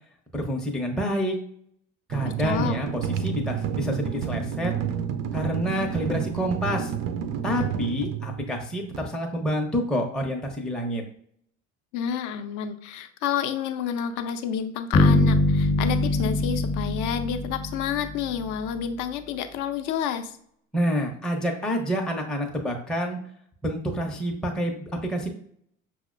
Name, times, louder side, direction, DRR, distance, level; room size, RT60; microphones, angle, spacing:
voice 1, 0.3-1.4 2.1-4.7 5.3-6.9 7.4-11.0 20.7-23.2 23.6-24.7 25.0-25.3, equal, ahead, 1 dB, 0.6 m, -28 dB
sound 1, 2.1-9.0, right 7 dB, 45° right, 0.4 m, -30 dB
voice 2, 2.4-2.8 11.9-20.3, left 8 dB, 50° left, 9 dB, 0.6 m, -29 dB
sound 2, 14.9-18.7, left 2 dB, 30° left, 0.9 m, -23 dB
5.7 x 2.1 x 2.4 m, 0.64 s
hypercardioid pair, 70°, 40 cm